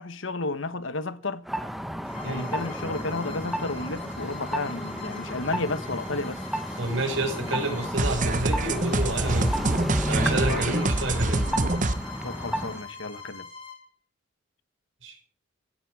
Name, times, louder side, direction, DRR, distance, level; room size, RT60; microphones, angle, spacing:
voice 1, 0.0-1.4 2.2-6.4 10.5-10.8 12.2-13.5, left 3 dB, 80° left, 1.2 m, -32 dB
sound 1, 1.5-12.8, equal, ahead, 1.2 m, -33 dB
Bowed string instrument, 2.0-13.9, left 4 dB, 30° left, 5.1 m, -42 dB
voice 2, 2.2-2.5 6.8-9.6 10.1-11.4 15.0-15.2, right 1 dB, 75° right, 5.3 m, -29 dB
sound 2, 8.0-11.9, right 2 dB, 40° right, 1.2 m, -25 dB
16.0 x 16.0 x 4.8 m
head